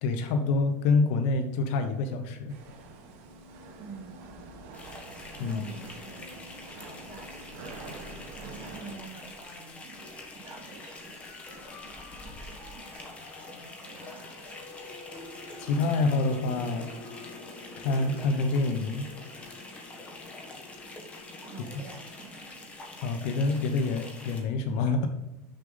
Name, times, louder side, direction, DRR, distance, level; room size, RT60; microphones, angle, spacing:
voice 1, 0.0-2.5 5.4-5.6 15.6-16.9 17.8-19.1 21.7-21.8 23.0-25.1, left 3 dB, 70° left, 7 dB, 0.9 m, -27 dB
sound 1, 2.5-8.9, right 2 dB, 65° right, 1.6 m, -46 dB
voice 2, 3.8-4.3 5.4-7.8 8.4-10.2 10.4-13.2 13.5-14.5 21.5-22.7, right 4 dB, 40° right, -4 dB, 2.9 m, -48 dB
sound 2, 4.7-24.4, left 2 dB, 15° left, 1.3 m, -46 dB
sound 3, 10.0-22.3, left 3 dB, 35° left, 1.8 m, -49 dB
6.5 x 6.5 x 3.9 m, 1.0 s
cardioid pair, 160°, 7 cm